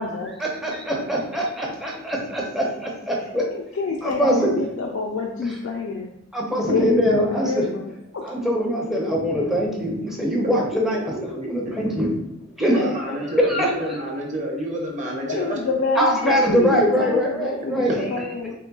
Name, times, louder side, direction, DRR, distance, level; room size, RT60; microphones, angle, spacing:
voice 1, 0.4-3.4 4.0-4.5 6.3-7.6 8.2-12.1 12.6-13.7 16.0-18.1, equal, ahead, -3 dB, 0.4 m, -23 dB
voice 2, 3.5-6.1 6.7-7.9 12.7-12.8 15.3-18.5, left 3 dB, 65° left, 0 dB, 0.3 m, -27 dB
voice 3, 10.9-11.5 12.6-15.6 16.0-16.1, right 1 dB, 35° right, -1 dB, 0.7 m, -29 dB
3.8 x 3.0 x 2.2 m, 0.85 s
head